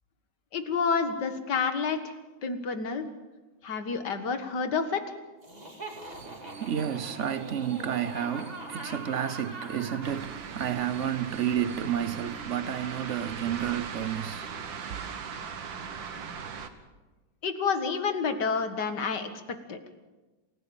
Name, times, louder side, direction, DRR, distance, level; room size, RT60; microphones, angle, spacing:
voice 1, 0.5-2.1 2.4-3.0 3.6-5.0 17.4-19.3 19.7-19.8, left 5 dB, 65° left, 2.3 m, -29 dB
Laughter, 5.4-10.2, right 2 dB, 20° right, 2.8 m, -42 dB
voice 2, 6.2-14.5, right 9 dB, 55° right, 0.9 m, -31 dB
sound 1, 10.0-16.7, right 6 dB, 80° right, 2.1 m, -39 dB
27.5 x 16.0 x 7.2 m
omnidirectional pair, 2.0 m